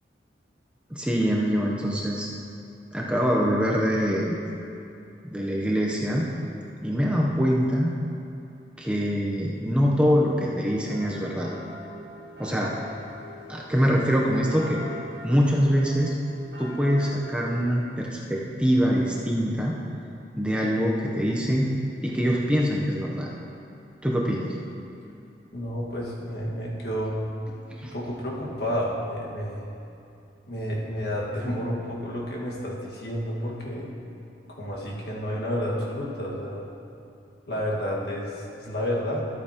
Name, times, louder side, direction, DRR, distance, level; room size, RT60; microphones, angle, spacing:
voice 1, 0.9-2.3 2.9-4.4 5.2-6.3 6.8-8.0 8.8-11.5 12.4-12.7 13.5-14.8 15.2-16.1 16.6-19.8 20.4-21.7 22.0-23.3 24.0-24.5 27.8-27.9, equal, 5° right, -3 dB, 0.7 m, -24 dB
sound 1, 10.9-17.8, left 2 dB, 75° right, 1.7 m, -42 dB
voice 2, 25.5-27.2 27.8-29.6 30.5-33.9 34.5-36.6 37.5-39.3, equal, 60° left, -4 dB, 1.7 m, -30 dB
13.0 x 8.6 x 2.9 m, 2.7 s
head